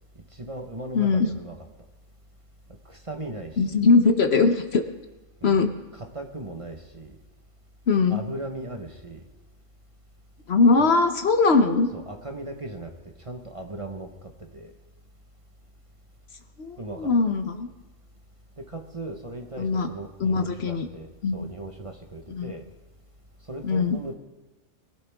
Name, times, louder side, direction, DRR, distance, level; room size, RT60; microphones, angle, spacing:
voice 1, 0.3-1.7 2.8-3.8 5.4-5.6 5.9-7.2 8.1-9.3 10.8-10.9 11.9-12.9 13.2-14.7 16.8-17.1 18.6-22.6 23.5-24.1, right 2 dB, 25° right, 3 dB, 1.2 m, -38 dB
voice 2, 0.9-1.3 3.6-4.8 5.4-5.7 7.9-8.2 10.5-11.9 16.6-17.7 19.6-19.9 20.2-20.9 21.2-21.3 22.3-22.5 23.6-24.0, left 4 dB, 60° left, 7 dB, 1.1 m, -21 dB
22.0 x 12.0 x 3.6 m, 1.1 s
omnidirectional pair, 1.3 m